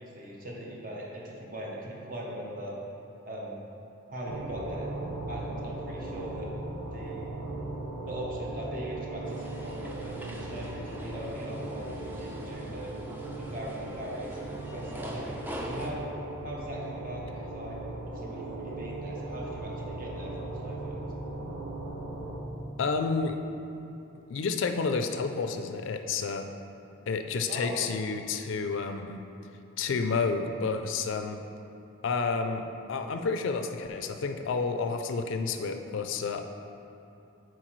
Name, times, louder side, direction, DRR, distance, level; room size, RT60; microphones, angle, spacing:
voice 1, 0.0-2.7 3.2-3.7 4.1-4.9 5.3-6.5 6.8-7.3 8.1-12.9 13.4-14.4 14.7-15.3 15.6-16.1 16.4-17.8 18.0-21.0 27.5-27.8, equal, 45° right, -3 dB, 0.9 m, -40 dB
sound 1, 4.2-22.4, right 2 dB, 90° right, 0.9 m, -38 dB
sound 2, 9.2-15.9, right 1 dB, 10° right, 0.4 m, -42 dB
voice 2, 22.8-23.4 24.3-26.5 27.1-29.2 29.8-31.4 32.0-36.4, left 4 dB, 70° left, 6 dB, 0.4 m, -30 dB
7.6 x 4.7 x 3.1 m, 2.9 s
head